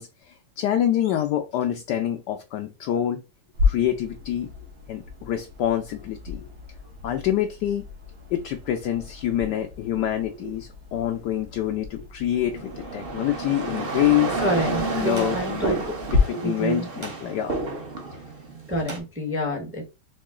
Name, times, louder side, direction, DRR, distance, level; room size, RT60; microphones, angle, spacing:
voice 1, 0.0-3.2 3.6-4.5 4.9-6.5 7.0-7.9 8.3-14.7 14.9-15.8 16.2-17.6 18.1-18.2, left 11 dB, 70° left, 5 dB, 1.0 m, -26 dB
sound 1, 3.5-16.2, left 4 dB, 85° right, 2.3 m, -33 dB
sound 2, 12.3-19.0, right 3 dB, 45° right, 0.7 m, -31 dB
voice 2, 14.4-15.7 16.3-16.9 18.7-19.9, right 1 dB, 10° right, -1 dB, 0.6 m, -27 dB
4.9 x 2.7 x 3.7 m, 0.28 s
omnidirectional pair, 2.2 m